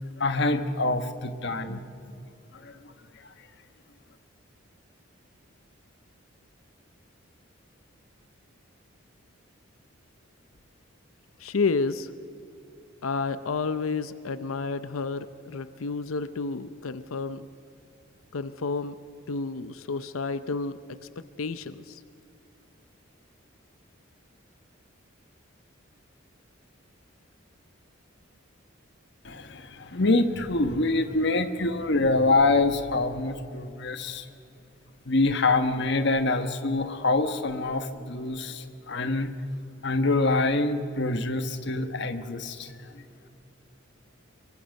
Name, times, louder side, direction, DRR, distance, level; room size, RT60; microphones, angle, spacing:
voice 1, 0.2-1.8 2.5-2.9 3.2-3.3 29.2-34.3 35.0-39.3 39.8-43.0, left 2 dB, 55° left, 9 dB, 1.3 m, -25 dB
voice 2, 11.4-12.1 13.0-17.5 18.3-19.0 19.3-20.8 21.4-22.0, left 4 dB, 90° left, 13 dB, 0.7 m, -30 dB
25.5 x 23.5 x 5.3 m, 2.7 s
head